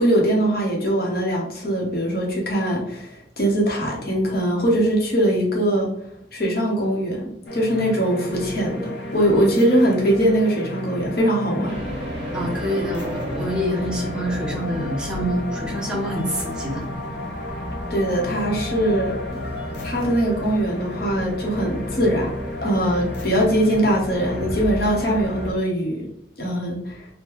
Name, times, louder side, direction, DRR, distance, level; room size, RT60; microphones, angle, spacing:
voice 1, 0.0-5.9 6.3-11.8 17.9-19.2 19.8-22.3 22.6-26.1 26.4-27.1, right 1 dB, 55° left, -2 dB, 0.9 m, -21 dB
sound 1, 7.5-25.5, left 2 dB, 80° left, 0.6 m, -33 dB
sound 2, 11.6-25.6, equal, 35° right, 0.9 m, -35 dB
voice 2, 12.3-16.8, equal, 5° right, -3 dB, 0.7 m, -26 dB
3.7 x 2.2 x 3.0 m, 0.77 s
head